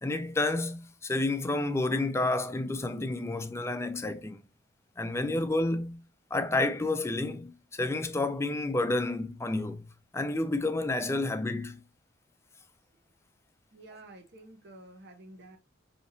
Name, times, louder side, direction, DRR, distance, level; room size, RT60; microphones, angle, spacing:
voice 1, 0.0-4.4 5.0-6.0 6.3-9.9 10.1-11.8, left 2 dB, 15° left, 0.4 m, -30 dB
voice 2, 13.7-15.6, right 2 dB, 60° right, 0.8 m, -50 dB
5.2 x 2.8 x 2.8 m
head